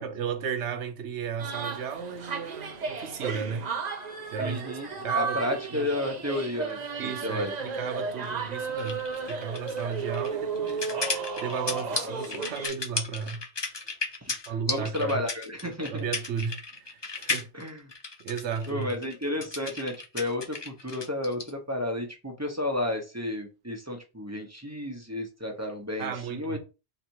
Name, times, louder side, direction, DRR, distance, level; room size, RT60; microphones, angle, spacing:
voice 1, 0.0-3.7 4.3-5.9 7.0-13.5 14.5-15.2 15.9-17.5 18.2-18.9 26.0-26.6, right 6 dB, 90° right, 1.1 m, -34 dB
sound 1, 1.4-12.7, right 5 dB, 45° right, 0.7 m, -34 dB
voice 2, 4.4-7.5 12.0-12.4 14.2-16.0 17.5-17.8 18.7-26.6, left 1 dB, 15° right, 1.0 m, -32 dB
sound 2, 8.8-21.5, left 3 dB, 30° left, 0.6 m, -34 dB
4.2 x 2.7 x 4.6 m
omnidirectional pair, 1.1 m